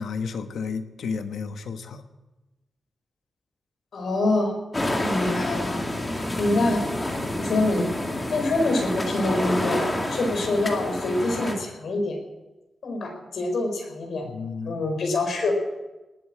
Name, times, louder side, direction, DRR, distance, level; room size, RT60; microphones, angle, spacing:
voice 1, 0.0-2.0 14.2-14.8, left 5 dB, 85° left, 8 dB, 1.2 m, -32 dB
voice 2, 3.9-4.5 5.0-5.8 6.4-6.8 7.2-7.9 8.3-9.8 10.1-12.2 12.8-14.2 14.7-15.5, left 2 dB, 65° left, 3 dB, 4.3 m, -25 dB
walkdeepsand wavesandwater, 4.7-11.5, left 1 dB, 20° left, 2.1 m, -28 dB
18.5 x 8.5 x 8.5 m, 1.1 s
wide cardioid pair, 170°, 0 cm